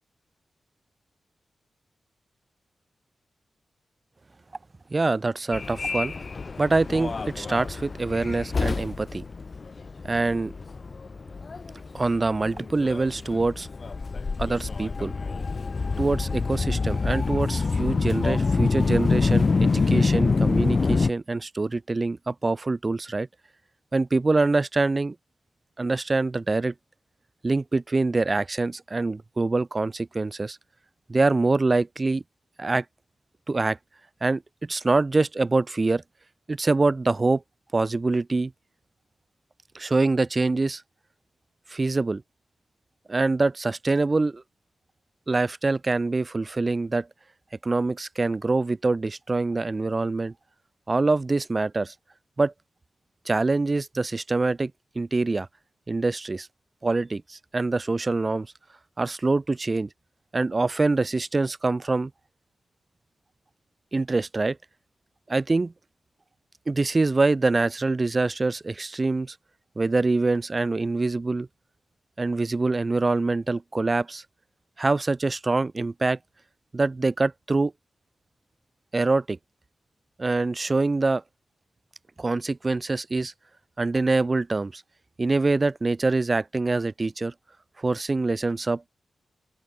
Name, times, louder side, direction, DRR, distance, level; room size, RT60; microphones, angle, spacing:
voice 1, 4.9-6.1 6.6-9.2 10.0-10.5 11.9-13.7 14.4-15.1 16.0-23.3 23.9-25.1 25.8-26.7 27.4-30.6 31.1-32.2 32.6-32.8 33.5-33.8 34.2-36.0 36.5-37.4 37.7-38.5 39.7-40.8 41.7-42.2 43.1-44.4 45.3-47.1 47.6-50.3 50.9-51.9 52.4-52.5 53.3-55.5 55.9-56.5 56.8-58.5 59.0-59.9 60.3-62.1 63.9-64.6 65.3-65.7 66.7-69.3 69.8-71.5 72.2-74.2 74.8-76.2 76.7-77.7 78.9-79.4 80.2-81.2 82.2-83.3 83.8-84.8 85.2-87.3 87.8-88.8, right 3 dB, 35° right, 4.7 m, -25 dB
Subway metro underground, 5.5-21.1, left 4 dB, 45° left, 1.2 m, -26 dB
open air
cardioid pair, 75°, 0 cm